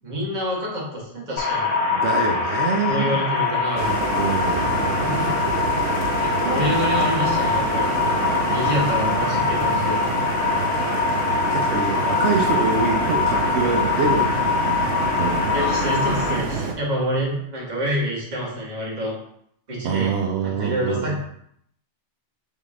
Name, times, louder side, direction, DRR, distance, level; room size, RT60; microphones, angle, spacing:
voice 1, 0.0-1.7 2.9-3.9 5.0-5.3 6.2-7.9 8.5-10.0 15.5-19.1 19.7-20.1 20.4-21.2, equal, 40° right, -4 dB, 1.4 m, -27 dB
sound 1, 1.4-16.4, left 5 dB, 85° left, 1.2 m, -23 dB
voice 2, 1.9-3.2 4.1-4.9 5.2-5.3 8.0-9.0 11.5-14.5 15.2-15.6 19.8-21.2, right 5 dB, 70° right, 2 dB, 0.9 m, -26 dB
sound 2, 3.3-13.6, left 2 dB, 40° left, 1.1 m, -38 dB
sound 3, 3.8-16.7, right 4 dB, 90° right, 1.0 m, -27 dB
3.7 x 3.7 x 3.6 m, 0.70 s
omnidirectional pair, 1.2 m